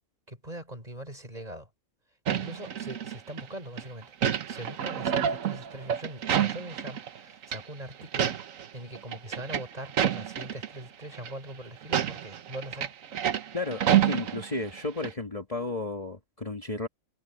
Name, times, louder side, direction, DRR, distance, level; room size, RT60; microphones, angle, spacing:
voice 1, 0.3-1.7 2.3-4.1 4.5-8.4 8.7-12.9, right 1 dB, 30° right, 5.1 m, -41 dB
sound 1, 2.3-3.4 3.8-7.2 7.4-7.6 8.0-8.7 9.0-10.7 11.1-11.3 11.8-14.8 15.0-15.1, right 9 dB, 75° right, 1.3 m, -28 dB
voice 2, 13.5-16.9, left 2 dB, 25° left, 1.7 m, -33 dB
omnidirectional pair, 1.4 m